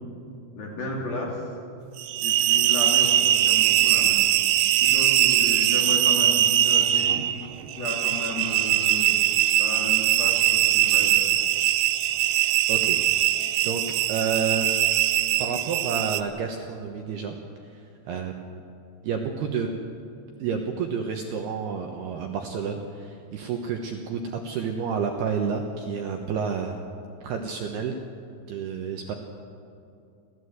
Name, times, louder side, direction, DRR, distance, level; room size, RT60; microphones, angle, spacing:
voice 1, 0.6-1.4 2.2-4.3 4.8-7.3 7.8-9.1 9.6-11.2, left 2 dB, 50° left, -1 dB, 4.4 m, -34 dB
sound 1, 2.0-16.2, right 12 dB, 85° right, 2.4 m, -21 dB
voice 2, 13.6-14.8 15.4-17.4 17.7-17.8 18.1-18.6 19.0-19.7 20.4-26.8 27.2-28.0 28.5-29.1, right 6 dB, 70° right, 3 dB, 2.6 m, -30 dB
29.5 x 13.5 x 8.1 m, 2.6 s
omnidirectional pair, 5.8 m